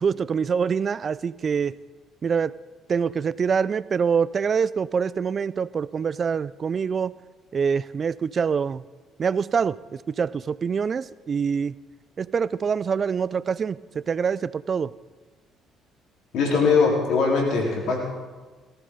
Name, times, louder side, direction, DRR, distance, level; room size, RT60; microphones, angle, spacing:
voice 1, 0.0-1.7 2.2-2.5 2.9-7.1 7.5-8.8 9.2-11.7 12.2-14.9, right 6 dB, 45° right, 19 dB, 0.4 m, -25 dB
voice 2, 16.3-18.0, left 4 dB, 65° left, -2 dB, 3.9 m, -21 dB
18.5 x 14.5 x 3.9 m, 1.4 s
hypercardioid pair, 50°, 0 cm